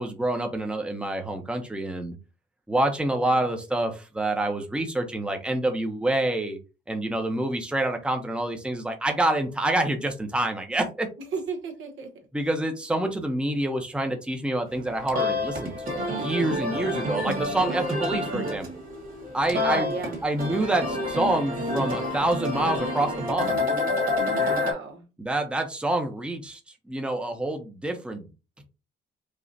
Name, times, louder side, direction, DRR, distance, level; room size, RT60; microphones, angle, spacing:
voice 1, 0.0-2.1 2.7-6.6 6.9-11.1 12.3-18.7 19.3-19.9 20.2-23.6 25.2-26.6 26.9-28.3, right 1 dB, 5° right, 4 dB, 0.8 m, -27 dB
voice 2, 11.3-12.1 19.5-20.2 24.3-25.0, right 5 dB, 75° right, 2 dB, 1.3 m, -33 dB
sound 1, 14.7-24.7, left 2 dB, 45° right, 1.8 m, -28 dB
5.0 x 2.4 x 2.7 m, 0.30 s
cardioid pair, 90°, 20 cm